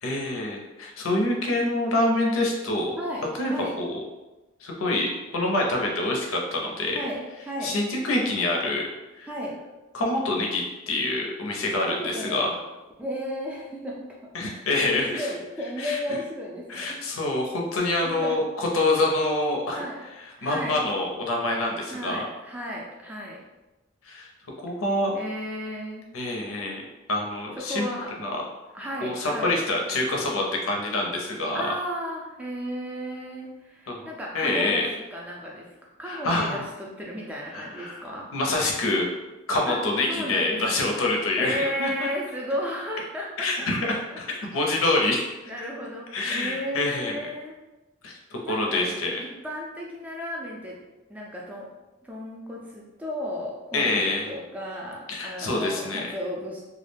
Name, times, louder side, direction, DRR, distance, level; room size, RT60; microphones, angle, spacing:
voice 1, 0.0-3.0 3.4-3.5 3.8-3.9 4.6-7.0 7.6-8.9 9.2-9.3 9.9-12.5 14.3-15.2 15.8-16.0 16.7-18.4 18.7-19.8 20.4-22.2 24.0-24.3 24.6-25.1 26.1-27.9 28.2-28.4 29.0-31.6 33.9-34.0 34.3-34.8 36.1-36.6 37.5-38.0 38.3-39.1 39.5-42.1 43.4-45.3 46.1-47.1 48.0-49.1 53.7-54.3 55.1-56.0, left 2 dB, 90° left, 0 dB, 0.6 m, -26 dB
voice 2, 3.0-3.7 6.9-7.7 9.3-9.6 11.8-12.6 13.0-17.0 18.0-18.4 19.7-20.0 20.4-20.8 21.9-23.4 25.1-26.1 27.5-28.1 28.7-29.6 31.5-35.7 36.0-38.2 39.6-40.8 41.4-43.7 44.1-44.2 45.5-47.6 48.4-50.8 51.1-51.7 52.0-56.6, equal, 5° right, -3 dB, 0.3 m, -34 dB
2.3 x 2.0 x 3.2 m, 1.1 s
head